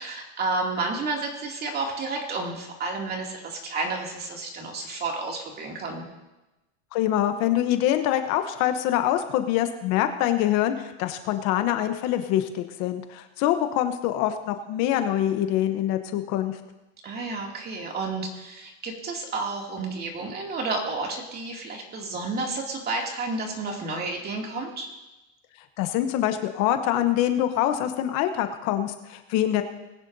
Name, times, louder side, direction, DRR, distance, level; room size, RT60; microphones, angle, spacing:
voice 1, 0.0-6.1 17.0-24.9, right 3 dB, 30° right, 0 dB, 2.6 m, -31 dB
voice 2, 6.9-16.6 25.8-29.6, left 12 dB, 50° left, 8 dB, 1.0 m, -25 dB
20.5 x 9.6 x 2.7 m, 1.0 s
supercardioid pair, 135°, 34 cm